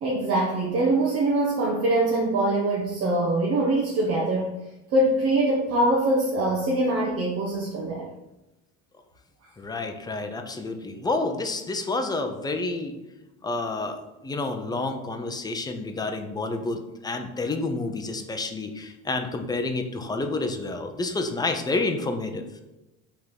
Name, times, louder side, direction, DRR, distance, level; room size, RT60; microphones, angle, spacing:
voice 1, 0.0-4.5 4.9-8.1, right 1 dB, 45° right, -3 dB, 1.3 m, -23 dB
voice 2, 9.6-12.9 13.4-22.4, left 3 dB, 10° left, 5 dB, 0.6 m, -29 dB
5.5 x 3.7 x 5.8 m, 0.98 s
cardioid pair, 135°, 33 cm